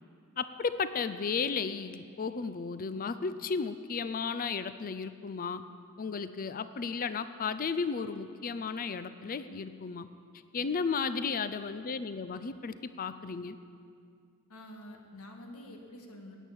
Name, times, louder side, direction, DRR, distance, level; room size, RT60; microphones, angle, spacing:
voice 1, 0.4-5.6 6.0-10.1 10.5-13.6, left 5 dB, 40° left, 13 dB, 0.5 m, -34 dB
voice 2, 14.5-16.3, left 1 dB, 75° left, 3 dB, 1.7 m, -47 dB
11.0 x 9.1 x 8.6 m, 2.3 s
head